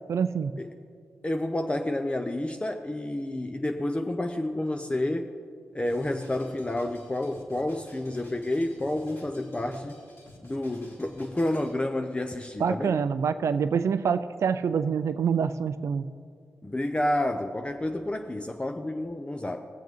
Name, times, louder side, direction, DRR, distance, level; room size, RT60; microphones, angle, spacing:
voice 1, 0.1-0.5 12.6-16.1, right 6 dB, 65° right, 11 dB, 0.3 m, -26 dB
voice 2, 1.2-5.3 5.7-10.0 10.4-13.0 16.6-19.6, left 1 dB, 20° left, 6 dB, 0.5 m, -30 dB
Drum kit, 5.8-11.7, left 1 dB, 50° left, 2.3 m, -51 dB
17.0 x 7.1 x 3.2 m, 2.2 s
supercardioid pair, 45°, 5 cm